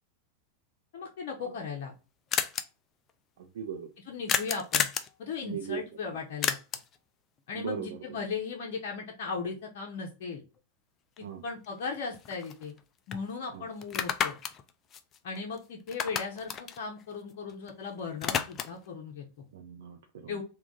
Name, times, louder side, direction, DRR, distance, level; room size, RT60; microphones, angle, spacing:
voice 1, 0.9-1.9 4.0-4.9 5.2-6.5 7.5-10.4 11.2-12.7 13.1-14.4 15.2-19.4 20.3-20.4, left 5 dB, 50° left, 0 dB, 0.8 m, -37 dB
sound 1, 1.4-1.5 1.6-1.7 1.9-2.0 2.3-2.6 4.3-5.1 6.4-7.0 11.2-11.3 11.6-12.8 13.1-13.2 13.8-15.6 15.9-17.7 18.0-18.9, left 8 dB, 30° left, 0.4 m, -31 dB
voice 2, 3.4-3.9 5.4-5.8 7.5-8.0 11.2-11.4 13.5-13.7 19.5-20.4, right 7 dB, 55° right, 3 dB, 0.5 m, -38 dB
3.5 x 2.4 x 3.7 m, 0.32 s
figure-of-eight pair, 90°, 0 cm